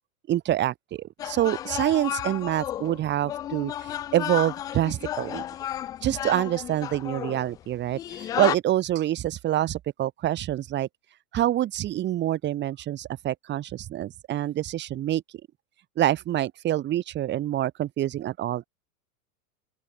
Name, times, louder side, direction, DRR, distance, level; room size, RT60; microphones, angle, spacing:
voice 1, 0.3-5.4 6.0-10.9 11.3-15.2 16.0-18.7, right 13 dB, 25° right, 2.8 m, -26 dB
sound 1, 1.2-8.5, left 12 dB, 10° left, 0.3 m, -33 dB
open air
supercardioid pair, 150°, 43 cm